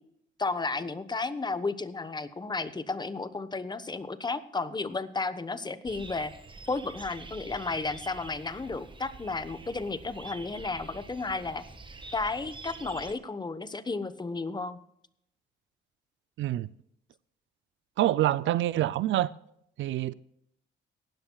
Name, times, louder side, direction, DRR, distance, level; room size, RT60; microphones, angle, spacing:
voice 1, 0.4-6.3 6.7-11.6 12.1-14.8, left 3 dB, 20° left, 1.1 m, -33 dB
sound 1, 5.9-13.1, right 3 dB, 25° right, 1.4 m, -46 dB
voice 2, 16.4-16.7 18.0-19.3 19.8-20.1, right 14 dB, 70° right, 0.5 m, -26 dB
18.0 x 13.0 x 2.3 m
cardioid pair, 90°, 20 cm